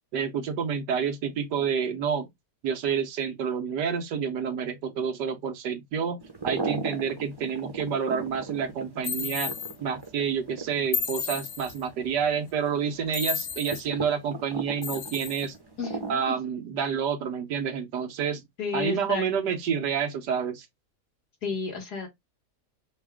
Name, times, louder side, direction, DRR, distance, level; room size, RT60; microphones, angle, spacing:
voice 1, 0.1-2.3 2.6-9.5 9.8-15.5 16.1-18.4 18.7-20.7, right 7 dB, 85° right, 1.5 m, -29 dB
sound 1, 6.2-16.1, right 3 dB, 20° right, 0.6 m, -38 dB
sound 2, 9.0-9.7 10.9-11.8 13.1-13.8 14.8-15.5, left 6 dB, 55° left, 1.0 m, -32 dB
voice 2, 18.6-19.6 21.4-22.1, left 5 dB, 70° left, 2.2 m, -32 dB
5.2 x 2.4 x 3.5 m
omnidirectional pair, 1.8 m